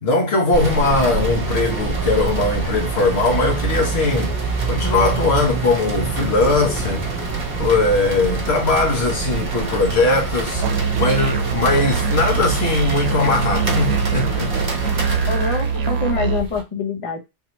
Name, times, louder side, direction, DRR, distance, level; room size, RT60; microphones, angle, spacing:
voice 1, 0.0-4.3 4.7-7.0 7.5-14.5, left 3 dB, 80° left, 1.3 m, -20 dB
sound 1, 0.5-15.8, right 4 dB, 45° right, 1.0 m, -26 dB
sound 2, 0.8-16.6, right 3 dB, 25° right, 0.5 m, -36 dB
Musical instrument, 10.5-16.4, right 5 dB, 90° right, 0.9 m, -23 dB
voice 2, 15.3-17.2, left 4 dB, 35° left, 0.7 m, -25 dB
3.6 x 2.8 x 2.9 m
omnidirectional pair, 1.1 m